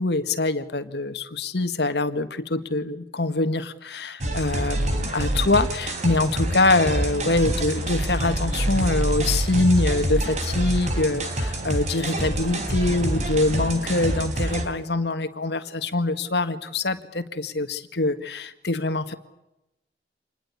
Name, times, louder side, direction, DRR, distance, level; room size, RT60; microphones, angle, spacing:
voice 1, 0.0-19.1, left 2 dB, 65° left, 10 dB, 1.8 m, -24 dB
sound 1, 4.2-14.7, right 1 dB, 40° right, 4.1 m, -26 dB
27.0 x 20.5 x 8.5 m, 0.91 s
head